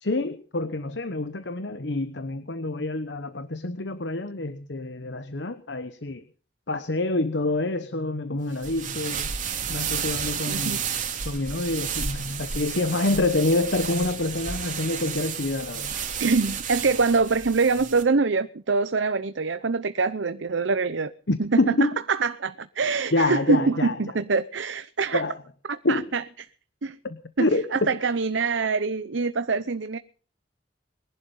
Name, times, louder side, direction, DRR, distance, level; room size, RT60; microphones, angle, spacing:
voice 1, 0.0-6.2 6.7-9.3 9.7-10.8 11.2-15.9 21.3-22.0 23.1-24.0 25.1-25.4 25.8-26.1 27.0-28.0, left 2 dB, 65° left, 1.1 m, -27 dB
sound 1, 8.5-18.0, right 7 dB, 45° right, 2.9 m, -32 dB
voice 2, 10.5-10.8 16.2-21.1 21.4-25.2 25.7-26.2 26.8-27.0 27.4-30.0, right 4 dB, 80° right, 0.8 m, -24 dB
21.5 x 11.5 x 5.6 m
head